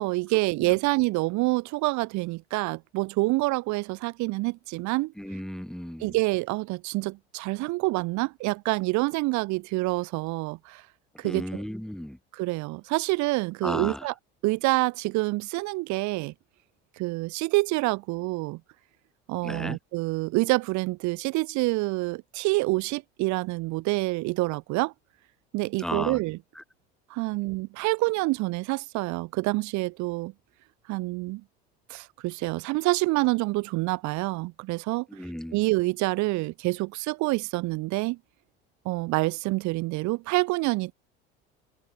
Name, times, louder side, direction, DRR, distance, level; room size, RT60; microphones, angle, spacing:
voice 1, 0.0-5.1 6.0-10.8 11.2-11.4 12.3-14.1 14.4-16.3 17.0-18.6 19.3-24.9 25.5-26.4 27.1-30.3 30.9-31.4 31.9-35.1 35.5-38.2 38.8-40.9, right 22 dB, 65° right, 3.4 m, -27 dB
voice 2, 5.2-6.2 11.2-12.2 13.6-14.1 19.4-19.8 25.8-26.2 26.5-26.6 35.1-35.6, equal, ahead, 4.5 m, -35 dB
hypercardioid pair, 80°, 31 cm